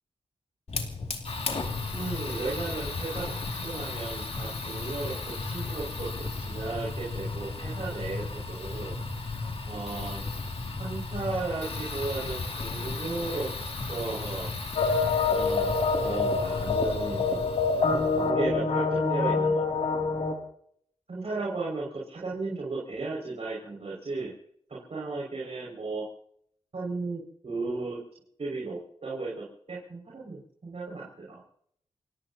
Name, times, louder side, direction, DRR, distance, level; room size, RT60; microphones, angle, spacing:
Fire, 0.7-18.3, left 3 dB, 55° left, 2.5 m, -35 dB
voice 1, 1.9-5.1 5.4-6.1 6.4-10.2 10.8-13.5 13.9-14.5 15.2-17.5 18.1-19.7 21.1-24.3 24.9-26.0 26.7-28.0 28.4-31.4, right 3 dB, 55° right, -5 dB, 5.7 m, -35 dB
sound 1, 14.8-20.3, left 4 dB, 85° left, 2.8 m, -26 dB
29.5 x 17.0 x 2.9 m, 0.66 s
cardioid pair, 65°, 12 cm